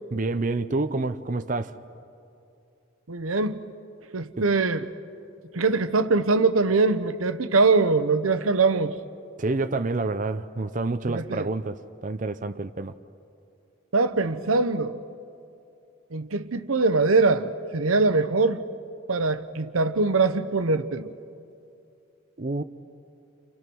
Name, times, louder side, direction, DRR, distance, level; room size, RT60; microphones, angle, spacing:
voice 1, 0.1-1.8 4.4-4.5 9.4-12.9 22.4-22.6, right 3 dB, 40° right, 0.6 m, -28 dB
voice 2, 3.1-3.6 4.1-4.9 5.5-8.9 11.1-11.5 13.9-15.0 16.1-18.6 19.1-21.1, right 3 dB, 90° right, 1.0 m, -22 dB
30.0 x 28.5 x 6.2 m
head